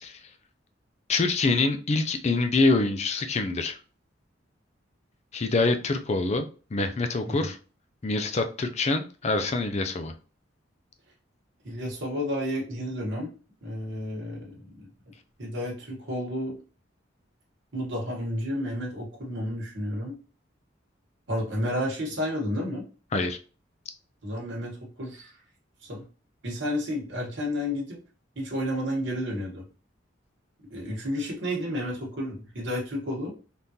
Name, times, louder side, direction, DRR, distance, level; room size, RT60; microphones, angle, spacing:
voice 1, 1.1-3.8 5.3-7.6 8.0-10.1 23.1-23.4, left 3 dB, 35° left, 7 dB, 0.4 m, -25 dB
voice 2, 11.6-13.3 13.6-14.9 15.4-16.6 17.7-20.2 21.3-22.8 24.2-25.3 25.9-26.0 26.4-28.0 28.4-29.6 30.6-33.3, equal, 75° right, -3 dB, 1.2 m, -31 dB
3.6 x 2.5 x 2.8 m, 0.36 s
head